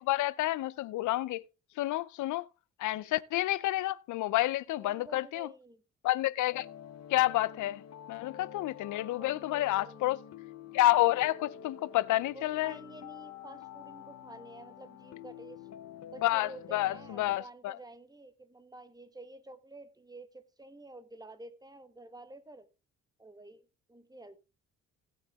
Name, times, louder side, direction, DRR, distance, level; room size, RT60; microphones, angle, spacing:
voice 1, 0.0-1.4 1.8-2.5 2.8-5.5 6.0-6.7 7.1-7.8 8.1-10.2 10.7-12.8 16.2-17.8, left 16 dB, 75° left, 0.6 m, -29 dB
voice 2, 4.8-5.8 9.2-10.1 12.3-15.7 16.1-22.7 23.2-24.4, right 1 dB, 15° right, 1.5 m, -50 dB
sound 1, 6.5-17.4, left 9 dB, 55° left, 1.0 m, -48 dB
17.0 x 6.5 x 3.6 m
cardioid pair, 90°, 30 cm